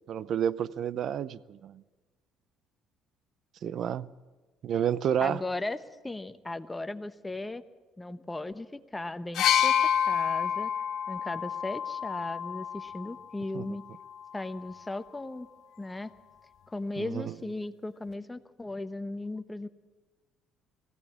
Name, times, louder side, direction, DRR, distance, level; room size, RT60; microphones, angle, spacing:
voice 1, 0.1-1.8 3.6-4.1 4.6-5.4 13.5-13.7 17.0-17.3, right 9 dB, 60° right, 0.6 m, -30 dB
voice 2, 5.2-5.8 6.0-7.6 8.0-9.7 10.1-10.7 11.1-13.8 14.3-15.5 15.8-16.1 16.7-19.7, left 2 dB, 15° left, 1.0 m, -36 dB
sound 1, 9.3-13.2 14.2-14.3, left 9 dB, 65° left, 0.7 m, -28 dB
19.0 x 16.0 x 8.6 m
supercardioid pair, 80°, 0 cm